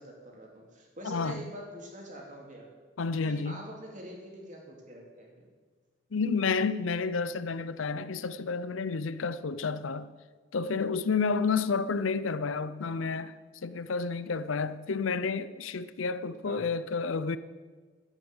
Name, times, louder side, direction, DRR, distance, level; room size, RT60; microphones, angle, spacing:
voice 1, 0.0-2.7 3.2-5.5 16.5-16.6, right 1 dB, 40° right, 2.8 m, -45 dB
voice 2, 1.0-1.4 3.0-3.6 6.1-10.1 10.5-13.3 13.6-17.4, left 4 dB, 85° left, 0.6 m, -30 dB
11.0 x 8.8 x 8.0 m
head